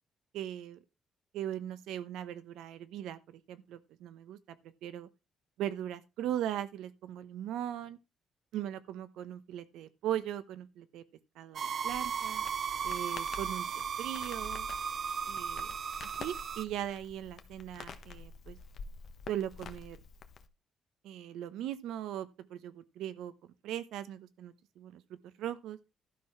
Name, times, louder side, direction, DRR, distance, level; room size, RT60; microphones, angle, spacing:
voice 1, 0.3-0.8 1.3-5.1 5.6-8.0 8.5-11.0 11.4-12.4 12.8-14.7 15.3-15.7 16.0-18.6 19.3-20.0 21.0-23.3 23.6-25.0 25.4-25.8, right 11 dB, 85° right, 0.9 m, -39 dB
sound 1, 11.6-16.7, right 7 dB, 55° right, 0.4 m, -36 dB
Crackle, 11.8-20.5, left 5 dB, 60° left, 1.1 m, -49 dB
12.0 x 4.6 x 5.8 m
cardioid pair, 75°, 0 cm